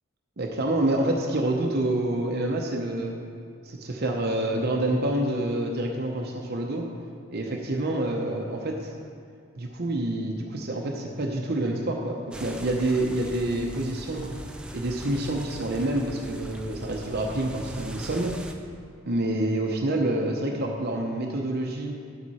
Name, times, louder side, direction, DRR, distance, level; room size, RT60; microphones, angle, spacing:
voice 1, 0.4-3.1 3.6-6.9 7.3-8.9 9.6-14.3 14.7-18.4 19.1-22.0, right 1 dB, 50° right, 0 dB, 0.8 m, -27 dB
sound 1, 12.3-18.5, right 1 dB, 5° right, 0.4 m, -40 dB
11.0 x 7.7 x 4.2 m, 2.2 s
head